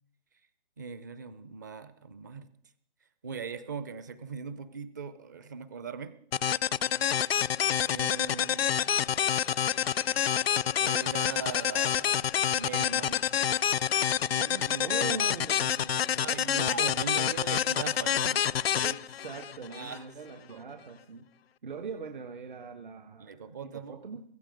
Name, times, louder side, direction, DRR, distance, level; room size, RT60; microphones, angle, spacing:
voice 1, 0.8-2.5 3.2-6.1 7.9-8.9 10.8-13.2 16.2-18.5 19.7-20.7 23.2-24.0, right 6 dB, 20° right, 14 dB, 0.5 m, -40 dB
sound 1, 6.3-20.0, left 9 dB, 80° left, 0.5 m, -28 dB
voice 2, 14.2-16.9 18.8-21.3 21.6-24.2, right 5 dB, 55° right, 7 dB, 1.4 m, -41 dB
16.5 x 15.5 x 5.1 m, 0.63 s
hypercardioid pair, 160°, 30 cm